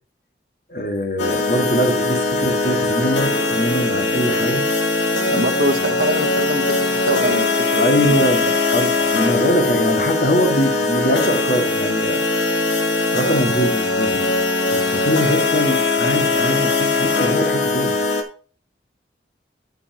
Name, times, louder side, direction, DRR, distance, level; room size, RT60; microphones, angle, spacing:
voice 1, 0.7-4.6 7.8-8.4 8.7-12.2 13.1-17.9, equal, 55° left, 3 dB, 1.9 m, -22 dB
sound 1, 1.2-18.2, left 3 dB, 85° left, 1.3 m, -20 dB
voice 2, 5.3-8.6, right 1 dB, 60° right, 9 dB, 1.0 m, -25 dB
12.5 x 5.6 x 2.9 m, 0.40 s
head